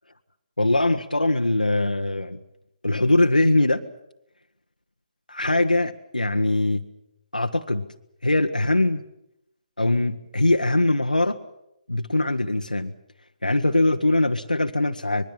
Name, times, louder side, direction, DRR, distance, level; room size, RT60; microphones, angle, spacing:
voice 1, 0.6-2.4 2.8-3.8 5.3-6.8 7.3-7.8 8.2-9.0 9.8-11.4 11.9-12.9 13.4-15.3, left 2 dB, 90° left, 5 dB, 1.1 m, -22 dB
25.0 x 21.0 x 7.4 m, 0.84 s
figure-of-eight pair, 140°, 4 cm